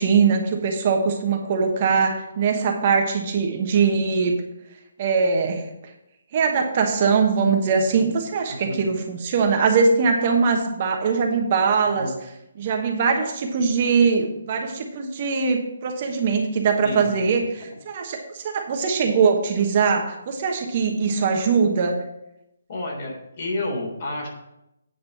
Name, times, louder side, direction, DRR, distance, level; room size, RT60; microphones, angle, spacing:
voice 1, 0.0-4.3 5.0-5.7 6.3-12.1 12.6-17.5 17.9-22.0, right 5 dB, 35° right, 3 dB, 1.2 m, -21 dB
voice 2, 22.7-24.3, left 2 dB, 45° left, -1 dB, 3.4 m, -29 dB
9.2 x 5.0 x 7.2 m, 0.86 s
hypercardioid pair, 165°, 0 cm